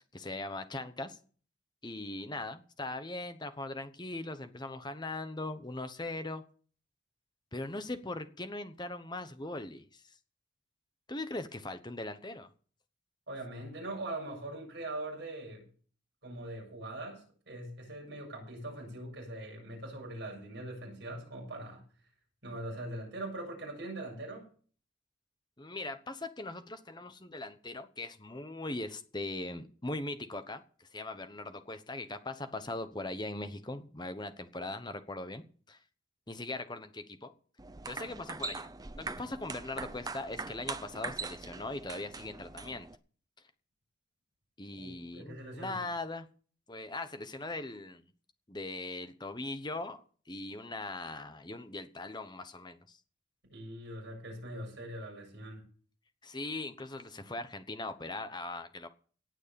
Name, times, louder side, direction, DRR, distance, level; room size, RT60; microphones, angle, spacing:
voice 1, 0.1-1.2 1.8-6.4 7.5-10.2 11.1-12.5 25.6-35.8 36.3-37.3 37.9-38.7 38.9-42.9 44.6-46.3 46.7-48.1 48.5-53.0 56.2-58.9, left 2 dB, 20° left, 10 dB, 1.0 m, -40 dB
voice 2, 13.3-15.7 16.2-21.8 22.4-24.4 44.8-45.8 53.5-55.6, right 1 dB, 55° right, -1 dB, 7.6 m, -42 dB
sound 1, 37.6-43.0, right 4 dB, 20° right, 0.6 m, -42 dB
18.0 x 6.5 x 7.0 m, 0.43 s
head